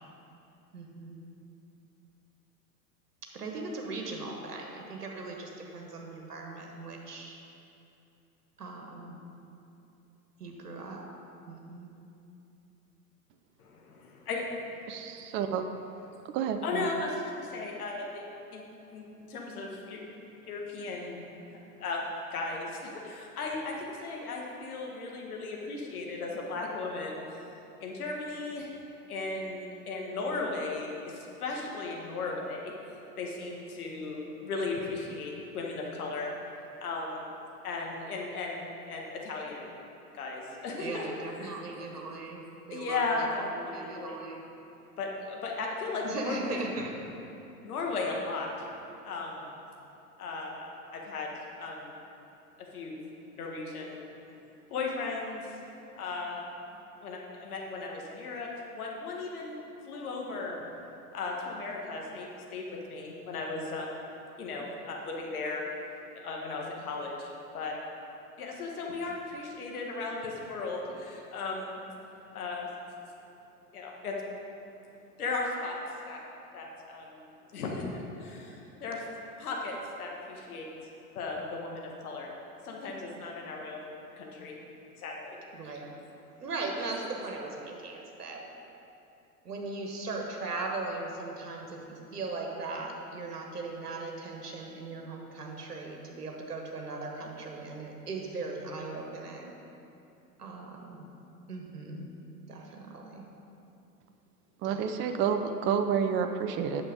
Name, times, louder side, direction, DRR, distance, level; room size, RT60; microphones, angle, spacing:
voice 1, 0.7-1.2 3.3-7.4 8.6-9.2 10.4-11.1 11.5-11.9 40.8-44.4 46.0-46.9 85.5-85.9 86.4-88.4 89.4-99.5 100.4-101.0 101.5-102.1 102.5-103.2 104.7-104.8, right 3 dB, 80° right, 1 dB, 1.4 m, -38 dB
voice 2, 13.6-14.9 16.6-18.6 18.9-20.0 20.4-21.2 21.5-27.2 27.8-28.7 29.1-32.7 33.2-36.3 36.8-37.3 37.6-39.7 40.1-41.6 42.7-44.2 45.0-46.7 47.6-48.5 49.0-49.5 50.2-51.3 51.6-52.0 52.7-53.0 53.4-54.0 54.7-55.6 55.9-56.4 57.0-58.5 58.7-59.6 59.8-60.6 61.1-64.0 64.4-65.6 66.1-67.8 68.4-71.8 72.3-72.7 73.7-74.2 75.2-75.8 76.1-76.2 76.5-77.3 77.5-79.0 79.4-80.7 81.1-82.3 82.6-84.6 85.0-85.4, left 3 dB, 70° left, -1 dB, 1.8 m, -36 dB
voice 3, 14.9-15.6 16.3-16.9 104.6-106.8, right 7 dB, 25° right, 7 dB, 0.5 m, -29 dB
9.0 x 7.1 x 5.0 m, 2.8 s
figure-of-eight pair, 90°, 46 cm